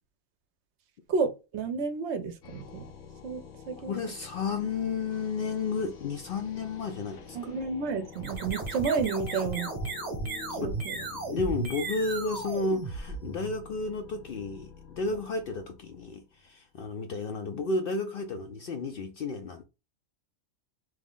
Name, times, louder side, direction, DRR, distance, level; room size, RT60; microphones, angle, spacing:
voice 1, 1.1-2.9 3.2-4.0 7.3-9.7 10.5-11.0, right 5 dB, 70° right, 0.8 m, -31 dB
sound 1, 2.4-16.5, left 6 dB, 90° left, 1.2 m, -48 dB
voice 2, 3.8-7.5 10.6-10.8 11.1-19.6, left 3 dB, 60° left, 0.6 m, -32 dB
sound 2, 8.1-13.6, right 3 dB, 35° right, 1.0 m, -35 dB
3.1 x 2.4 x 3.5 m
omnidirectional pair, 1.3 m